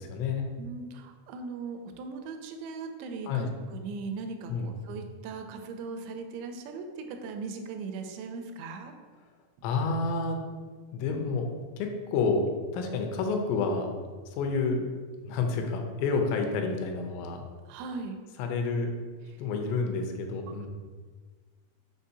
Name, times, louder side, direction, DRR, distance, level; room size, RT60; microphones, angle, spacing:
voice 1, 0.0-0.5 3.3-3.5 4.5-4.7 9.6-10.4 10.9-11.5 11.8-12.4 12.7-13.9 14.3-14.9 15.2-17.5 18.4-18.9 19.4-20.7, left 4 dB, 85° left, 3 dB, 3.0 m, -29 dB
voice 2, 0.6-8.9 17.7-18.2 19.3-19.4, right 4 dB, 85° right, 6 dB, 2.7 m, -39 dB
7.2 x 5.6 x 2.7 m, 1.4 s
omnidirectional pair, 5.0 m